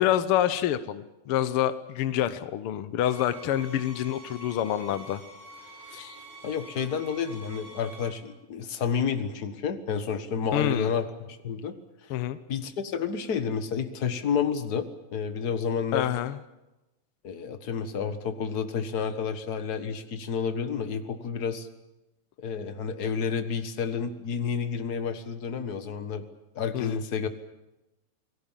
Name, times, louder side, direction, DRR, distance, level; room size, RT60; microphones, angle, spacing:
voice 1, 0.0-5.2 5.9-6.2 10.5-10.9 12.1-12.4 15.9-16.4 26.7-27.0, left 11 dB, 75° left, 12 dB, 1.2 m, -27 dB
sound 1, 3.0-8.1, right 2 dB, 65° right, 7.1 m, -47 dB
voice 2, 6.4-11.8 12.0-12.2 12.5-16.1 17.2-21.7 22.4-26.2 26.5-27.3, left 6 dB, 50° left, 8 dB, 1.2 m, -30 dB
28.5 x 19.5 x 7.4 m, 0.99 s
omnidirectional pair, 3.8 m